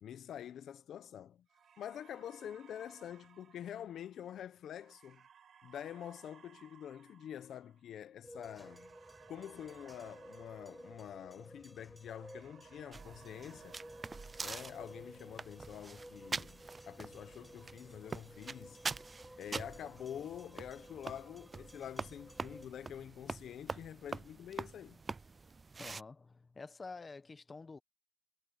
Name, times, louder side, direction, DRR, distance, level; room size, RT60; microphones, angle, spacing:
voice 1, 0.0-1.4 1.8-5.2 5.6-8.9 9.3-13.8 14.4-18.8 19.4-25.0, left 10 dB, 70° left, 1.0 m, -47 dB
sound 1, 1.5-11.7 12.0-15.4, right 8 dB, 60° right, 4.8 m, -62 dB
sound 2, 8.2-22.7, equal, 5° right, 5.4 m, -55 dB
sound 3, 12.9-26.0, right 4 dB, 30° right, 0.3 m, -45 dB
voice 2, 25.8-27.8, left 4 dB, 30° left, 1.3 m, -49 dB
cardioid pair, 90°, 0 cm